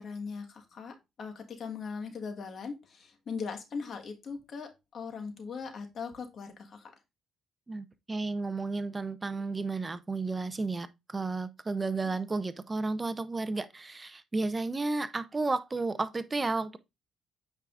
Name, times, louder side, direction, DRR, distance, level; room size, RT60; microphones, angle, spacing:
voice 1, 0.0-6.9 12.1-12.2, left 5 dB, 55° left, 1.5 m, -40 dB
voice 2, 7.7-16.8, right 3 dB, 25° right, 0.6 m, -32 dB
9.0 x 4.8 x 2.5 m
cardioid pair, 90°, 0 cm